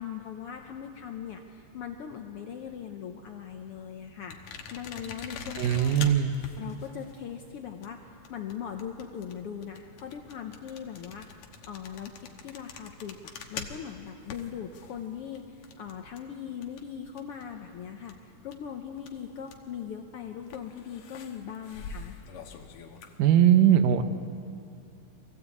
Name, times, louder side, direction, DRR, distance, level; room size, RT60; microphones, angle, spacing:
voice 1, 0.0-6.2 6.6-11.3 11.7-22.2, left 8 dB, 85° left, 4 dB, 1.2 m, -40 dB
sound 1, 4.3-17.7 17.9-19.8 20.4-23.2, left 6 dB, 70° left, 2.4 m, -44 dB
voice 2, 5.6-6.4 23.2-24.0, right 10 dB, 85° right, 9 dB, 2.5 m, -20 dB
23.0 x 16.0 x 8.4 m, 2.5 s
omnidirectional pair, 3.7 m